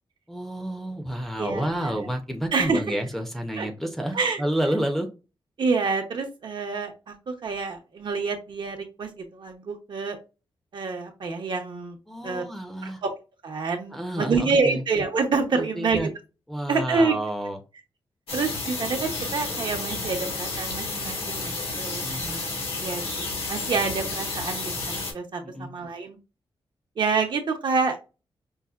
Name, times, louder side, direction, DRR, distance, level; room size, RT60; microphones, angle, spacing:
voice 1, 0.3-5.1 12.1-13.0 13.9-14.8 15.5-16.1 16.5-17.6 22.0-22.3 25.4-25.7, right 1 dB, 5° left, 2 dB, 0.6 m, -30 dB
voice 2, 1.4-2.1 2.5-3.0 3.6-3.7 4.1-4.4 5.6-10.2 10.7-12.0 12.2-12.4 12.8-13.1 13.4-16.1 16.7-17.1 18.3-22.5 22.8-23.0 23.5-26.2 27.0-28.2, right 4 dB, 60° right, 4 dB, 0.8 m, -27 dB
sound 1, 18.3-25.1, left 3 dB, 85° left, 1.4 m, -31 dB
5.4 x 2.1 x 2.3 m, 0.30 s
wide cardioid pair, 160°, 9 cm